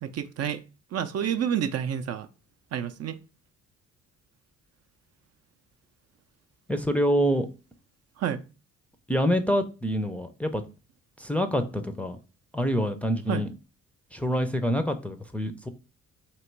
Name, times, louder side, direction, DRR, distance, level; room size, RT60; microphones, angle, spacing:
voice 1, 0.0-0.6 0.9-2.3 2.7-3.2 8.2-8.4 13.3-13.4, right 9 dB, 55° right, 0.5 m, -29 dB
voice 2, 6.7-7.5 9.1-10.6 11.2-12.2 12.5-13.5 14.1-15.7, equal, 5° left, 0.5 m, -26 dB
3.0 x 2.9 x 4.4 m
cardioid pair, 90°, 30 cm